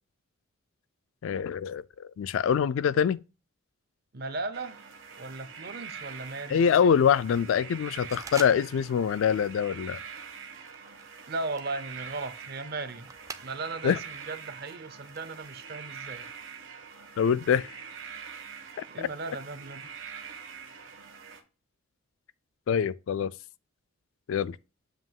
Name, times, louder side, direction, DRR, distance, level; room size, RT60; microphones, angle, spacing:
voice 1, 1.2-3.2 6.5-10.0 13.8-14.0 17.2-17.7 19.0-19.1 22.7-23.3 24.3-24.6, left 7 dB, 70° left, 0.3 m, -25 dB
voice 2, 4.1-4.8 5.2-6.6 11.3-16.3 18.9-19.9, right 3 dB, 50° right, 0.7 m, -37 dB
sound 1, 4.5-21.4, right 6 dB, 65° right, 1.1 m, -44 dB
sound 2, 8.1-9.0 9.3-9.7 10.2-13.9 14.2-15.8, right 4 dB, 15° right, 0.4 m, -46 dB
7.5 x 2.9 x 5.3 m
head